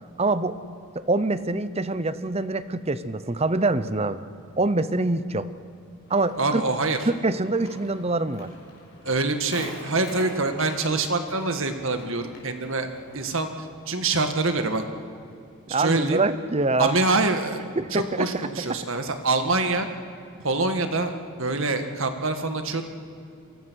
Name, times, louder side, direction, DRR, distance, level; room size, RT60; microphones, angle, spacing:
voice 1, 0.2-0.6 0.9-4.2 4.6-5.5 6.1-6.6 7.1-8.5 15.7-16.9 17.8-18.3, right 2 dB, 25° right, 13 dB, 0.8 m, -25 dB
Walk footsteps, 6.0-13.4, left 2 dB, 45° left, 6.0 m, -44 dB
voice 2, 6.4-7.0 9.0-12.9 13.1-13.5 13.9-14.8 15.7-16.2 16.8-17.6 17.9-19.9 20.4-21.1 21.4-22.8, right 3 dB, 60° right, 7 dB, 1.8 m, -25 dB
28.0 x 24.0 x 6.4 m, 2.6 s
head